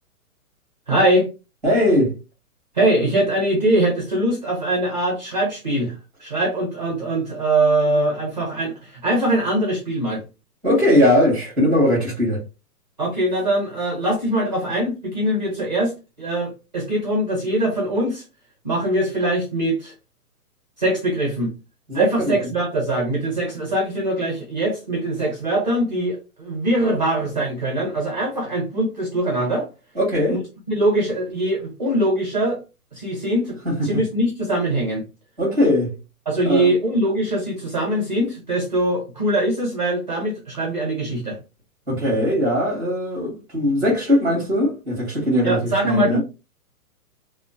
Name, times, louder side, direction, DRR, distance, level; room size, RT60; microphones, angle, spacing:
voice 1, 0.9-1.3 2.7-5.9 6.2-10.2 13.0-18.2 18.6-19.9 20.8-21.5 21.9-29.7 30.3-30.4 30.7-32.6 32.9-35.0 36.3-41.4 45.4-46.2, right 1 dB, 30° right, 0.6 m, -22 dB
voice 2, 1.6-2.1 10.6-12.4 21.9-22.4 29.9-30.4 33.6-34.0 35.4-35.9 36.4-36.7 41.9-46.2, left 1 dB, ahead, 1.3 m, -20 dB
3.2 x 2.1 x 2.6 m
hypercardioid pair, 180°, 46 cm